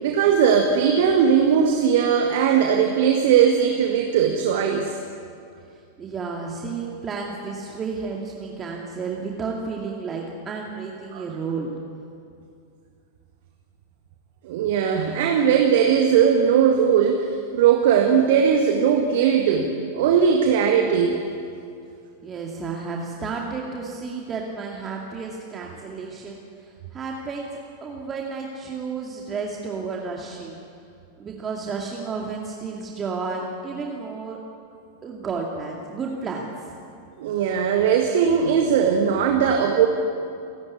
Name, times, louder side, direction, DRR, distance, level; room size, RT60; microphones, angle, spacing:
voice 1, 0.0-5.0 11.1-11.2 14.4-21.2 37.2-39.9, right 7 dB, 55° right, 3 dB, 1.8 m, -19 dB
voice 2, 5.7-11.7 22.2-26.4 26.9-27.5 27.8-30.6 31.2-34.4 35.0-36.7, right 4 dB, 25° right, -1 dB, 2.3 m, -32 dB
28.5 x 12.5 x 8.4 m, 2.5 s
figure-of-eight pair, 95°, 0 cm